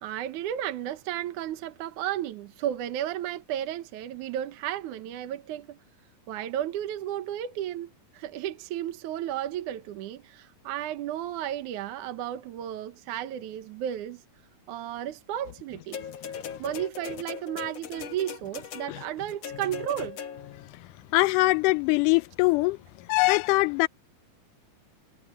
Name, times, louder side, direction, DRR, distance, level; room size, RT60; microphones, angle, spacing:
voice 1, 0.0-5.8 6.3-14.2 14.7-16.1 16.6-20.2, right 11 dB, 70° right, 2.4 m, -33 dB
sound 1, 15.9-20.7 21.6-21.7, left 8 dB, 55° left, 2.1 m, -39 dB
voice 2, 21.1-22.8 23.1-23.9, left 22 dB, 80° left, 2.0 m, -22 dB
omnidirectional pair, 4.0 m